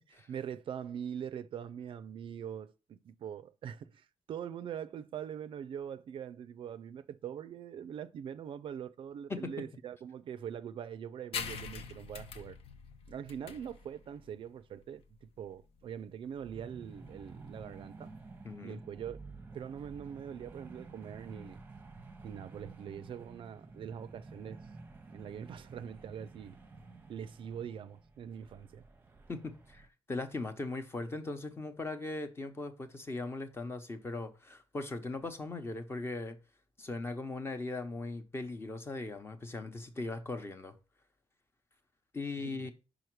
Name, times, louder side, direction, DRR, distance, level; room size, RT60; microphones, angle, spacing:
voice 1, 0.3-12.6 13.1-18.2 18.6-19.2 19.5-21.6 22.2-24.6 25.1-26.6 27.1-28.8 42.4-42.7, right 8 dB, 60° right, 0.4 m, -43 dB
sound 1, 11.3-18.4, left 6 dB, 75° left, 0.7 m, -45 dB
sound 2, 16.4-29.9, right 3 dB, 20° right, 0.7 m, -51 dB
voice 2, 18.4-18.8 29.3-36.4 36.8-40.7 42.1-42.7, left 3 dB, 25° left, 0.8 m, -39 dB
5.0 x 4.9 x 4.6 m
cardioid pair, 120°, 10 cm